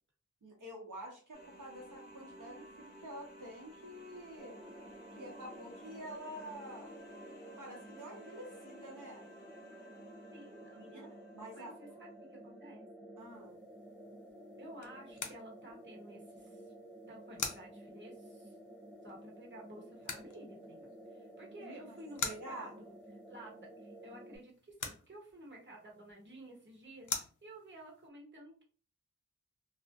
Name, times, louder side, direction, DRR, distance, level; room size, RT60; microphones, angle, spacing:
voice 1, 0.4-4.6 5.2-7.0 7.6-9.3 10.8-11.8 13.2-13.5 21.6-22.0 22.2-22.7, equal, 75° right, -1 dB, 0.7 m, -48 dB
sound 1, 1.3-12.1, equal, 30° left, 1.1 m, -55 dB
sound 2, 4.4-24.4, right 1 dB, ahead, 0.4 m, -53 dB
voice 2, 10.3-11.1 11.5-13.1 14.6-16.7 17.1-18.6 19.0-22.9 23.3-27.1 27.4-28.6, right 1 dB, 35° right, -1 dB, 0.8 m, -53 dB
sound 3, 13.2-28.1, left 5 dB, 70° left, 0.5 m, -47 dB
2.5 x 2.0 x 2.4 m, 0.40 s
wide cardioid pair, 45°, 32 cm